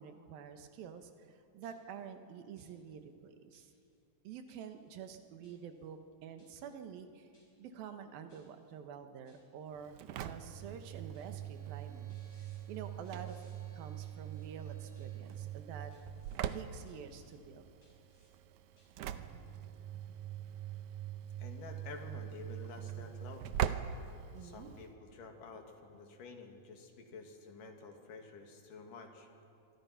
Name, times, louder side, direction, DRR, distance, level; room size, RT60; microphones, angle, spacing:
voice 1, 0.0-3.7 4.2-7.3 7.6-12.2 12.7-15.9 16.5-17.7 24.3-24.7, right 7 dB, 90° right, 8 dB, 3.1 m, -48 dB
sound 1, 0.8-1.1 1.6-2.1 2.6-3.0 3.5-4.0 4.5-4.9 5.4-5.9 6.4-6.8 7.3-7.8 8.3-8.8 9.2-9.7 10.2-10.7 11.1-11.6 12.1-12.6 13.0-13.6 14.0-14.5 14.9-15.4 15.9-16.4 16.9-17.4 17.8-18.3 18.8-18.9, left 2 dB, 40° left, 6.5 m, -72 dB
Engine / Slam, 9.7-24.9, right 10 dB, 75° right, 1.9 m, -42 dB
Bowed string instrument, 10.8-15.3, right 3 dB, 55° right, 8.2 m, -68 dB
voice 2, 21.4-23.5 24.4-29.3, left 4 dB, 70° left, 3 dB, 3.6 m, -50 dB
27.0 x 24.0 x 5.8 m, 2.6 s
omnidirectional pair, 4.1 m